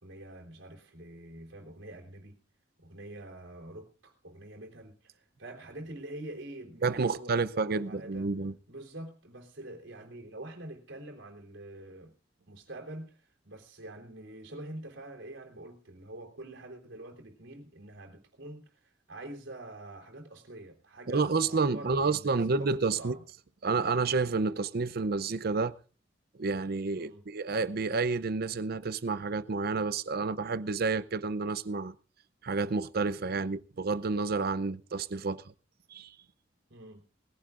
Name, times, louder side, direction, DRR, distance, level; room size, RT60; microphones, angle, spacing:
voice 1, 0.0-2.4 2.8-8.3 8.7-12.1 12.5-23.2 26.9-27.2 36.7-37.0, right 1 dB, 80° right, 3.5 m, -46 dB
voice 2, 6.8-8.5 21.1-23.2 23.6-25.7 26.4-31.9 32.4-35.4 35.9-36.1, right 4 dB, 55° right, 0.6 m, -30 dB
21.0 x 15.5 x 2.5 m
head